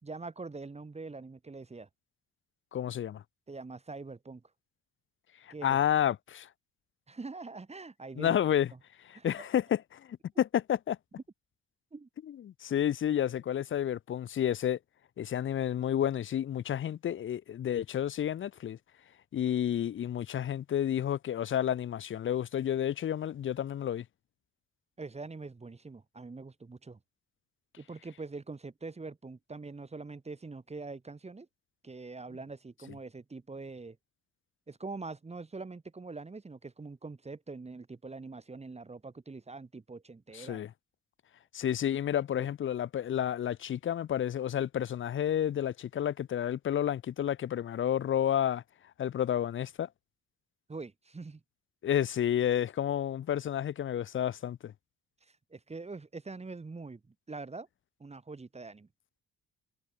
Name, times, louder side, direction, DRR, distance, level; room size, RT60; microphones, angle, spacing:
voice 1, 0.0-1.9 3.5-4.4 5.5-5.8 7.1-8.4 9.1-9.3 11.9-12.1 25.0-27.0 27.8-31.5 31.8-34.0 34.7-40.6 42.4-42.5 50.7-51.4 55.3-57.0 57.3-57.7 58.0-58.9, right 3 dB, 20° right, 1.6 m, -44 dB
voice 2, 2.7-3.2 5.4-6.5 8.2-8.7 9.0-11.0 12.3-14.8 15.2-18.8 19.3-24.0 40.3-40.7 41.5-48.6 49.0-49.9 51.8-54.7, left 10 dB, 40° left, 0.6 m, -30 dB
cardioid pair, 90°, 30 cm